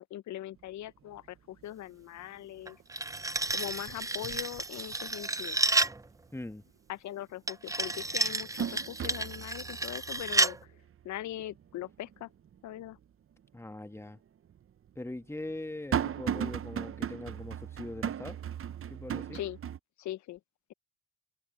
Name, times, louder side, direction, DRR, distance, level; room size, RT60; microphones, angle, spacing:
voice 1, 0.0-2.8 3.5-5.6 6.9-10.8 11.0-12.3 12.6-13.0 19.3-19.6 20.0-20.4, left 13 dB, 70° left, 0.7 m, -41 dB
sound 1, 0.6-0.7 1.1-1.6 2.0-2.8 3.1-5.3 5.7-5.8 7.3-7.4 7.9-13.0 13.4-13.5 14.5-19.8, right 9 dB, 45° right, 0.7 m, -38 dB
sound 2, 2.7-6.0 7.5-10.6, right 2 dB, 10° right, 0.6 m, -31 dB
voice 2, 6.3-6.6 13.5-14.2 14.9-18.4 18.9-19.4, left 2 dB, 10° left, 1.3 m, -41 dB
cardioid pair, 70°, 30 cm